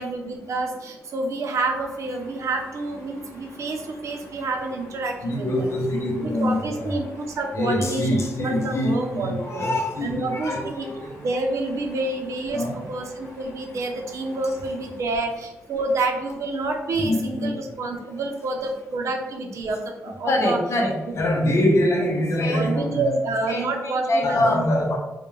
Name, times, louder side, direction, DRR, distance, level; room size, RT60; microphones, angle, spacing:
voice 1, 0.0-5.7 6.1-9.7 10.0-10.9 11.2-20.6 21.1-21.3 22.5-24.6, right 2 dB, 65° right, 3 dB, 0.5 m, -28 dB
sound 1, 1.6-17.4, left 1 dB, 85° left, 0.8 m, -48 dB
voice 2, 3.1-3.7 5.2-7.0 7.5-11.2 12.5-12.8 16.9-17.6 20.3-25.0, left 1 dB, 55° left, 1 dB, 0.6 m, -24 dB
2.2 x 2.1 x 3.0 m, 1.0 s
cardioid pair, 65°, 6 cm